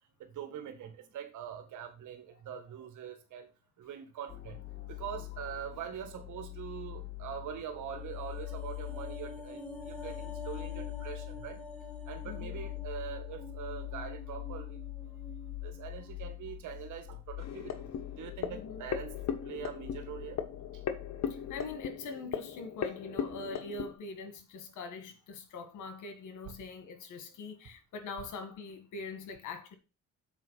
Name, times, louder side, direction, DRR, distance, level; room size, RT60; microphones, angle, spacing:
voice 1, 0.2-3.5 3.8-4.6 4.9-11.6 12.1-14.8 15.6-17.9 18.2-19.1 19.4-20.4 20.7-20.8, right 9 dB, 80° right, 1.8 m, -43 dB
sound 1, 4.3-21.8, left 21 dB, 40° left, 1.7 m, -44 dB
sound 2, 8.0-16.4 16.7-16.9, left 1 dB, 5° left, 1.8 m, -48 dB
voice 2, 12.2-12.6 18.5-18.8 21.3-29.8, left 3 dB, 80° left, 1.9 m, -43 dB
sound 3, 17.4-23.9, left 8 dB, 60° left, 1.2 m, -38 dB
7.4 x 4.6 x 5.6 m
cardioid pair, 90°, 30 cm